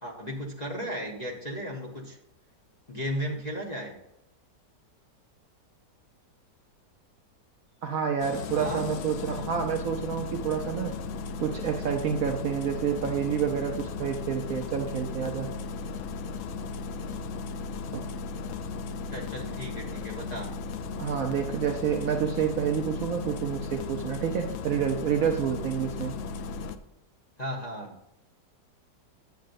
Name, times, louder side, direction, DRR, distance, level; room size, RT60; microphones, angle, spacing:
voice 1, 0.0-2.2 2.9-4.0 8.6-8.9 19.1-20.5 27.4-28.0, equal, 35° left, -3 dB, 0.7 m, -35 dB
voice 2, 7.8-10.9 11.4-15.5 17.9-18.1 21.0-26.1, right 8 dB, 65° right, 4 dB, 0.8 m, -29 dB
Engine starting, 8.2-26.8, left 4 dB, 85° left, 0.7 m, -36 dB
9.3 x 7.5 x 2.6 m, 0.85 s
omnidirectional pair, 1.9 m